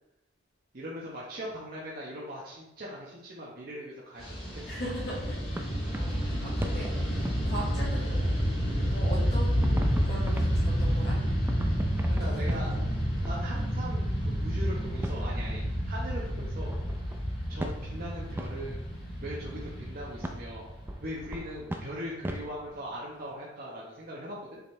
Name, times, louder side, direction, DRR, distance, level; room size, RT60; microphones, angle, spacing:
voice 1, 0.7-4.7 12.0-12.7 13.2-16.8 17.5-18.9 19.2-20.7 21.0-24.6, equal, 50° right, -5 dB, 1.1 m, -40 dB
Fixed-wing aircraft airplane, 4.2-21.6, equal, 30° left, 2.1 m, -30 dB
sound 1, 4.4-8.1 8.4-9.2 9.6-14.0 15.0-19.1 20.2-23.3, right 1 dB, 10° right, 0.4 m, -41 dB
voice 2, 4.6-8.3 8.8-11.2 12.1-12.8, equal, 55° left, -7 dB, 1.9 m, -40 dB
7.0 x 4.1 x 3.3 m, 0.90 s
head